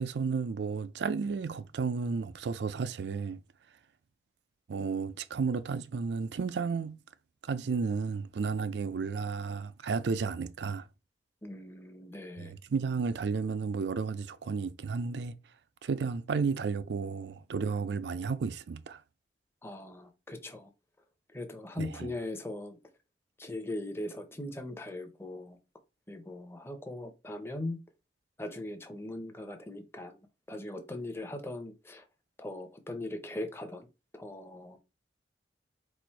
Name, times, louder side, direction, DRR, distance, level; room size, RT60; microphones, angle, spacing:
voice 1, 0.0-3.4 4.7-7.0 7.4-10.9 12.4-15.4 15.8-19.0 21.8-22.2, right 5 dB, 75° right, 0.4 m, -32 dB
voice 2, 11.4-12.5 19.6-20.7 21.3-22.8 23.4-25.6 26.1-27.8 28.4-30.2 30.5-32.0 32.4-33.9 34.1-34.8, left 1 dB, 15° left, 0.7 m, -40 dB
4.3 x 2.6 x 4.5 m
head